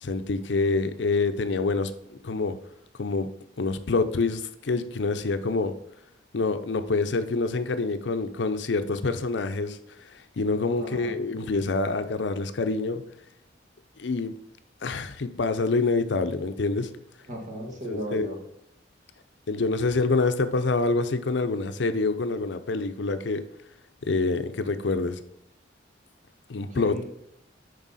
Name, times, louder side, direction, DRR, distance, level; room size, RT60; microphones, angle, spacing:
voice 1, 0.0-2.6 3.0-3.3 3.6-5.7 6.3-13.0 14.0-14.3 14.8-16.9 17.9-18.3 19.5-23.4 24.0-25.2 26.5-27.0, left 3 dB, 70° left, 10 dB, 0.6 m, -26 dB
voice 2, 10.7-11.2 17.3-18.4 26.7-27.0, equal, 40° right, 1 dB, 1.6 m, -35 dB
7.3 x 5.4 x 4.1 m, 0.77 s
head